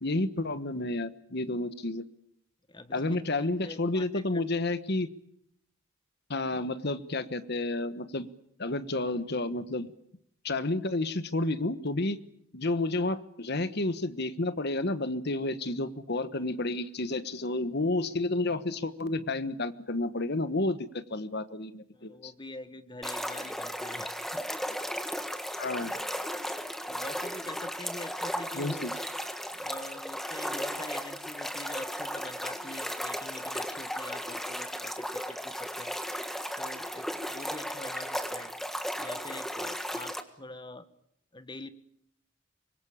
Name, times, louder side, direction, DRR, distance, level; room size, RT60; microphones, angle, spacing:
voice 1, 0.0-2.0 2.9-5.1 6.3-8.3 8.6-9.9 10.4-12.2 12.5-22.3 25.6-25.9 28.5-28.9, left 2 dB, 50° left, 13 dB, 1.3 m, -31 dB
voice 2, 2.7-4.4 21.9-24.4 24.7-24.8 25.8-26.1 26.9-28.8 29.5-36.0 36.6-38.5 39.0-40.9 41.3-41.7, left 2 dB, 20° left, 12 dB, 1.4 m, -45 dB
sound 1, 23.0-40.2, equal, ahead, 1.6 m, -35 dB
25.0 x 22.5 x 8.8 m, 0.72 s
head